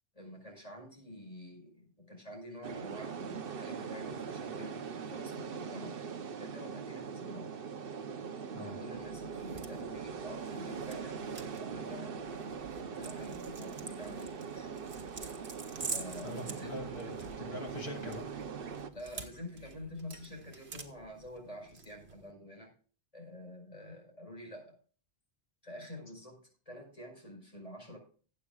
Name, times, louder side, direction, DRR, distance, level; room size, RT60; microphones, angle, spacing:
voice 1, 0.1-6.0 6.4-7.5 8.6-11.2 11.6-12.2 12.8-14.7 15.9-17.2 18.9-22.7 23.1-24.8 25.6-26.4 26.7-28.0, left 1 dB, 35° left, 0 dB, 5.2 m, -48 dB
sound 1, 2.6-18.9, right 6 dB, 65° right, 1.0 m, -41 dB
sound 2, 8.9-22.3, right 4 dB, 85° right, 1.7 m, -48 dB
voice 2, 16.2-18.3, left 1 dB, 75° left, 2 dB, 3.0 m, -43 dB
19.5 x 8.5 x 2.4 m, 0.40 s
omnidirectional pair, 1.0 m